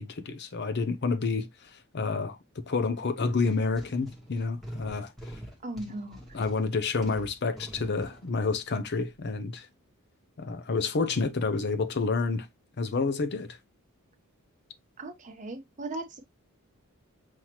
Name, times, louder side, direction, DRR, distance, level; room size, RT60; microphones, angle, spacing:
voice 1, 0.0-1.5 1.9-2.4 2.7-5.1 6.3-9.7 10.4-12.5 12.8-13.6, left 4 dB, 50° left, 0.6 m, -29 dB
sound 1, 3.0-9.4, equal, ahead, 1.4 m, -46 dB
voice 2, 5.6-6.4 15.0-16.2, right 2 dB, 35° right, 1.0 m, -38 dB
5.6 x 3.1 x 2.9 m
head